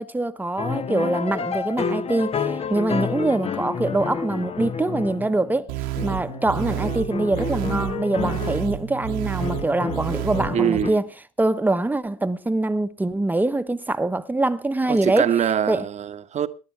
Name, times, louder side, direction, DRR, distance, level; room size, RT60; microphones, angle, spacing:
voice 1, 0.0-5.7 6.0-11.0 11.4-15.3 15.7-15.9, right 2 dB, 10° right, 1.1 m, -24 dB
sound 1, 0.6-5.6 5.9-8.7 9.4-10.9, left 6 dB, 35° left, 1.0 m, -29 dB
sound 2, 5.7-10.8, right 13 dB, 80° right, 1.4 m, -30 dB
voice 2, 10.5-11.0 14.9-16.5, right 9 dB, 45° right, 1.1 m, -23 dB
19.0 x 10.5 x 4.5 m
supercardioid pair, 75°, 17 cm